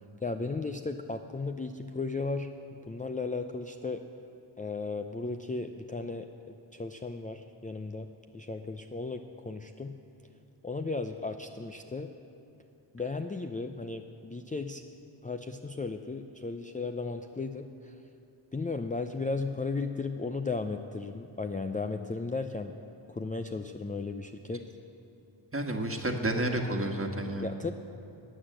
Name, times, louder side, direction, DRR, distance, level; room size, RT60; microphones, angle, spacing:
voice 1, 0.2-2.5 2.9-4.0 4.6-8.1 8.3-9.9 10.6-12.1 12.9-14.8 15.2-17.9 18.5-22.7 23.1-24.7 27.4-27.7, left 3 dB, 20° left, 5 dB, 0.5 m, -35 dB
voice 2, 25.5-27.4, right 1 dB, 30° right, 3 dB, 1.5 m, -30 dB
13.0 x 8.0 x 7.6 m, 2.8 s
cardioid pair, 40°, 46 cm